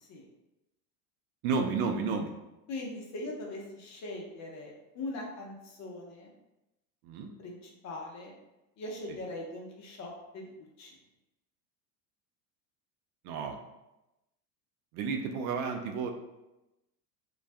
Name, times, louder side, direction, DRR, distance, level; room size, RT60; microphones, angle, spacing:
voice 1, 1.4-2.3 7.0-7.3 9.1-9.2 13.2-13.6 14.9-16.1, right 5 dB, 65° right, 4 dB, 0.5 m, -31 dB
voice 2, 2.7-6.3 7.4-8.3 8.8-10.5 10.8-10.9, left 2 dB, 35° left, -1 dB, 0.6 m, -41 dB
2.3 x 2.2 x 2.5 m, 0.96 s
hypercardioid pair, 100°, 50 cm